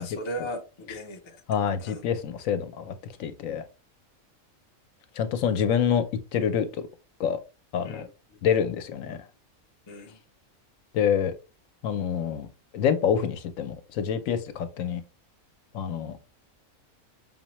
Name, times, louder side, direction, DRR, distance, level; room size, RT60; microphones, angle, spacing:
voice 1, 0.0-1.4 1.8-2.0 7.8-8.4 9.9-10.2, equal, 45° left, 0.3 m, -37 dB
voice 2, 1.5-2.9 3.2-3.6 5.2-6.0 6.3-6.7 7.2-7.4 7.7-8.0 8.4-9.2 10.9-11.3 11.8-12.5 12.7-15.0 15.7-16.2, left 8 dB, 75° left, 0.9 m, -26 dB
5.4 x 2.1 x 2.9 m
omnidirectional pair, 1.5 m